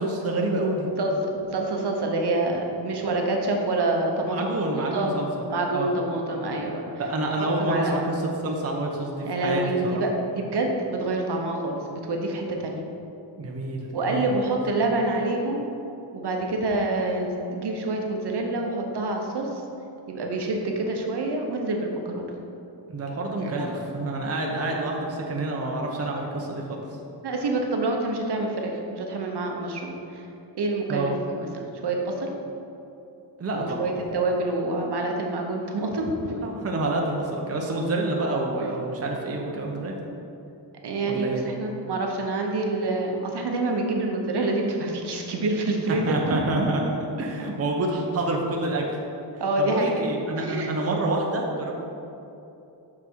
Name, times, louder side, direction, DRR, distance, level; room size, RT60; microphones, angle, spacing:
voice 1, 0.0-0.9 4.2-6.0 7.0-10.0 13.4-14.4 22.9-26.8 30.9-31.2 33.4-33.9 36.4-40.0 41.1-41.4 45.9-46.8 47.2-49.0 49.6-51.7, right 2 dB, 35° right, 0 dB, 0.7 m, -28 dB
voice 2, 1.0-5.2 5.5-6.9 7.4-7.9 9.2-12.8 13.9-15.6 16.1-19.6 20.1-22.3 23.4-23.8 27.2-30.2 30.6-32.3 33.5-36.3 40.8-46.4 49.4-50.1 50.4-50.7, right 2 dB, 65° right, 1 dB, 0.9 m, -27 dB
6.2 x 5.9 x 4.5 m, 2.8 s
wide cardioid pair, 155°, 43 cm